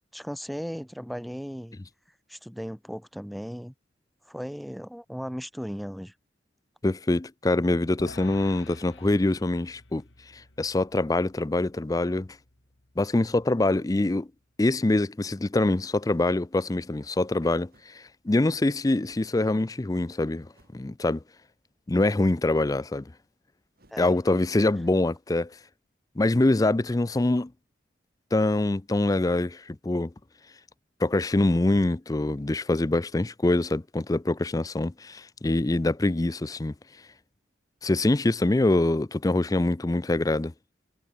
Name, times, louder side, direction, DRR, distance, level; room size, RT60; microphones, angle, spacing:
voice 1, 0.1-1.8 2.3-3.7 4.3-6.1 23.9-24.1, equal, ahead, 0.8 m, -36 dB
voice 2, 6.8-10.0 10.3-12.4 13.0-14.3 14.6-20.5 20.7-21.2 21.9-23.1 24.0-25.6 26.2-27.5 28.3-30.1 31.0-36.7 37.8-40.5, left 2 dB, 20° left, 0.4 m, -24 dB
sound 1, 8.0-14.4, left 3 dB, 85° left, 2.4 m, -51 dB
sound 2, 16.2-16.7 17.7-18.0 19.0-19.4 20.5-20.8 22.0-22.4 23.7-24.1, right 1 dB, 55° right, 4.9 m, -62 dB
head